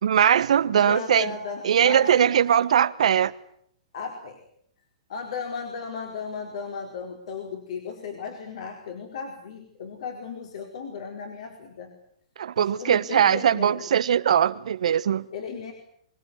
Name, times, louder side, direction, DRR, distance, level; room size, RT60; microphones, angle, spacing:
voice 1, 0.0-1.3 1.6-3.3 12.4-15.2, right 9 dB, 75° right, 1.2 m, -20 dB
voice 2, 0.7-2.4 3.9-4.4 5.1-11.9 12.6-13.9 15.3-15.7, left 5 dB, 65° left, 4.6 m, -35 dB
25.0 x 19.0 x 9.6 m
hypercardioid pair, 160°, 4 cm